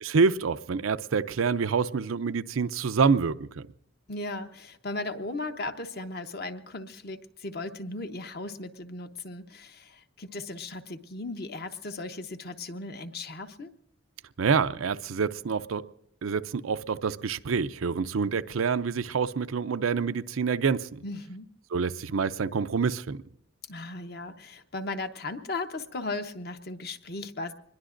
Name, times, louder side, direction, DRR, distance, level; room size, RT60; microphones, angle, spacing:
voice 1, 0.0-3.7 14.4-15.8 16.2-21.0 21.7-23.2, right 5 dB, 90° right, 0.5 m, -27 dB
voice 2, 4.1-13.7 21.0-21.5 23.7-27.5, left 2 dB, 50° left, 0.9 m, -37 dB
24.5 x 21.5 x 2.6 m
head